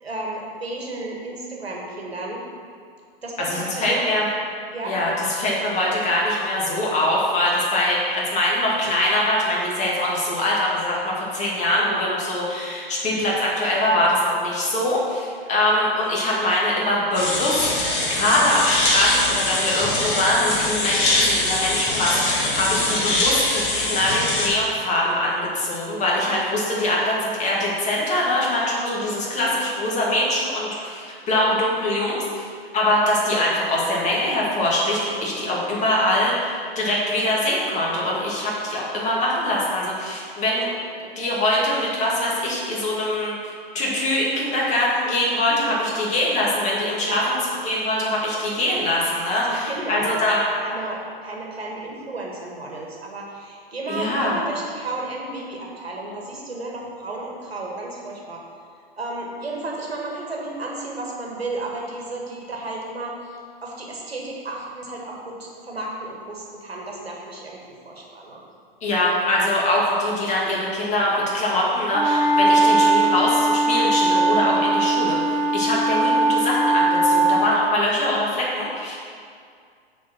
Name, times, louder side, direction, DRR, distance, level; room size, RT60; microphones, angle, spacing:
voice 1, 0.0-2.4 3.2-4.0 4.7-5.0 11.7-12.0 26.1-26.3 29.2-29.4 45.5-45.8 47.0-47.3 49.4-50.3 50.6-58.4 59.0-67.6 67.8-68.4, right 2 dB, 90° right, -2 dB, 1.7 m, -33 dB
voice 2, 3.4-4.3 4.8-40.7 41.2-43.3 43.7-50.4 53.9-54.4 68.8-79.0, left 1 dB, 25° left, -4 dB, 2.1 m, -23 dB
sound 1, 17.1-24.5, left 2 dB, 45° left, 1.9 m, -23 dB
sound 2, 71.9-77.4, right 2 dB, 30° right, 1.5 m, -19 dB
7.2 x 4.5 x 5.9 m, 2.2 s
figure-of-eight pair, 110°, 30 cm